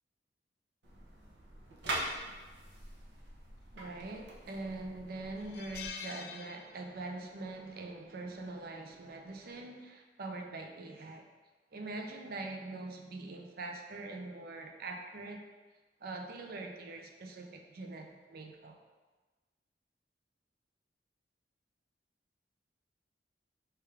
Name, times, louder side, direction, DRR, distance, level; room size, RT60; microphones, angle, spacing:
sound 1, 0.8-5.9, right 1 dB, 75° right, 0.9 m, -43 dB
voice 1, 3.7-11.3 11.7-15.4 16.0-18.8, right 2 dB, 60° right, 3 dB, 0.5 m, -43 dB
sound 2, 4.2-4.5 4.9-5.0 5.4-7.2 7.5-7.7 8.9-9.2, left 6 dB, 60° left, 0.4 m, -46 dB
4.4 x 3.5 x 3.4 m, 1.3 s
head